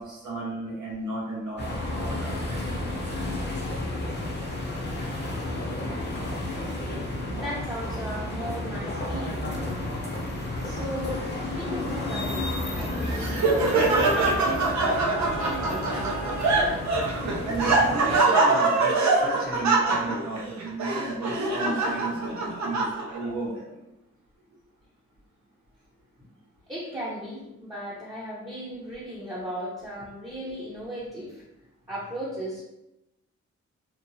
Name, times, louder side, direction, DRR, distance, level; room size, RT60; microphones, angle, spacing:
voice 1, 0.0-2.4 17.4-23.8, right 2 dB, 85° right, -6 dB, 1.2 m, -34 dB
sound 1, 1.6-18.2, left 1 dB, 35° left, 0.7 m, -32 dB
voice 2, 7.3-9.5 10.6-11.2 11.6-16.7 26.7-31.4 31.9-32.6, equal, 10° right, -7 dB, 0.7 m, -36 dB
Laughter, 12.8-23.3, right 3 dB, 70° right, 0.6 m, -24 dB
2.9 x 2.0 x 2.7 m, 0.91 s
cardioid pair, 65°, 29 cm